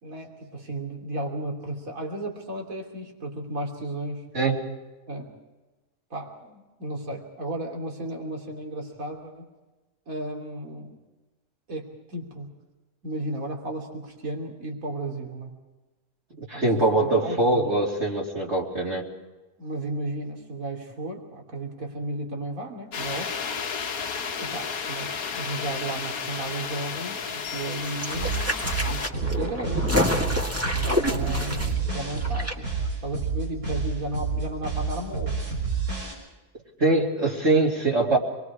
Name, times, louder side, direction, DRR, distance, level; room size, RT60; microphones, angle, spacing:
voice 1, 0.0-4.2 5.1-5.3 6.1-9.5 10.1-10.9 11.7-12.5 13.0-15.5 16.5-17.7 19.6-23.3 24.4-29.9 30.7-32.7 33.0-35.4, right 1 dB, 65° right, 1 dB, 3.4 m, -34 dB
voice 2, 16.5-19.0 36.8-38.2, right 2 dB, 45° right, -3 dB, 3.2 m, -22 dB
sound 1, 22.9-29.1, left 6 dB, 70° left, 1.6 m, -32 dB
sound 2, 27.7-32.5 32.8-32.9, left 1 dB, 10° right, 2.1 m, -28 dB
sound 3, 28.1-36.1, right 5 dB, 85° right, 7.0 m, -29 dB
27.0 x 22.0 x 4.8 m, 1.1 s
omnidirectional pair, 1.6 m